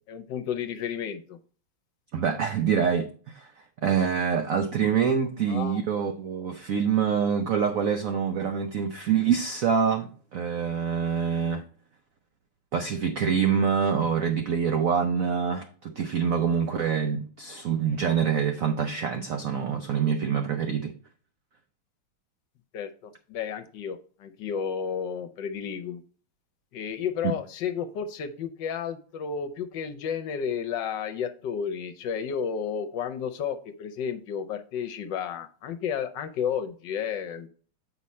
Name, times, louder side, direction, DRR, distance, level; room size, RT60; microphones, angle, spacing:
voice 1, 0.1-1.4 5.5-5.8 22.7-26.0 26.7-37.5, left 7 dB, 70° left, 1.2 m, -32 dB
voice 2, 2.1-3.5 3.8-11.6 12.7-20.9 27.2-27.3, right 7 dB, 85° right, 0.7 m, -26 dB
8.1 x 4.8 x 4.2 m
omnidirectional pair, 2.3 m